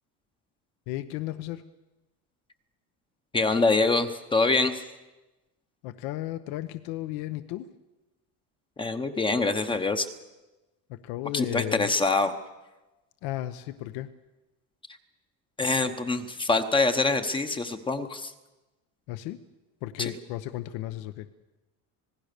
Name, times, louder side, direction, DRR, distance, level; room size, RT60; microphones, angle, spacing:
voice 1, 0.9-1.6 5.8-7.7 10.9-11.9 13.2-14.1 19.1-19.4 19.8-21.3, left 14 dB, 70° left, 11 dB, 0.9 m, -34 dB
voice 2, 3.3-4.8 8.8-10.1 11.3-12.3 15.6-18.3 20.0-20.1, left 3 dB, 15° left, 8 dB, 0.8 m, -25 dB
26.5 x 19.0 x 6.7 m, 1.1 s
cardioid pair, 170°, 38 cm